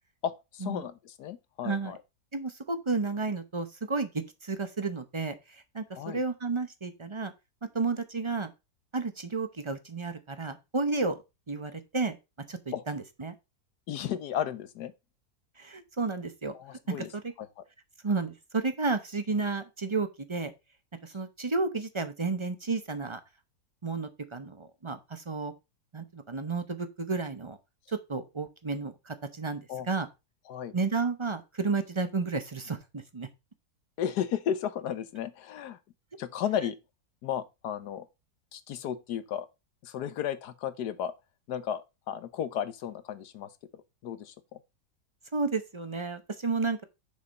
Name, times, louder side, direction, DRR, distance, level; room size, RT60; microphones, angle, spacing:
voice 1, 0.2-2.0 5.9-6.2 12.7-12.8 13.9-14.9 16.5-17.1 17.4-17.6 29.7-29.9 30.5-30.7 34.0-35.8 36.2-36.8 37.2-38.1 38.5-39.5 39.8-41.1 41.5-43.5 44.0-44.6, left 9 dB, 80° left, 1.4 m, -34 dB
voice 2, 1.6-2.0 2.3-7.3 7.7-8.5 8.9-11.2 11.5-12.2 12.5-13.3 15.6-16.5 16.9-17.3 18.0-20.5 21.0-23.2 23.8-25.5 25.9-27.6 27.9-30.1 30.7-33.3 45.3-46.8, right 4 dB, 30° right, 0.5 m, -32 dB
6.9 x 4.9 x 5.3 m
omnidirectional pair, 1.7 m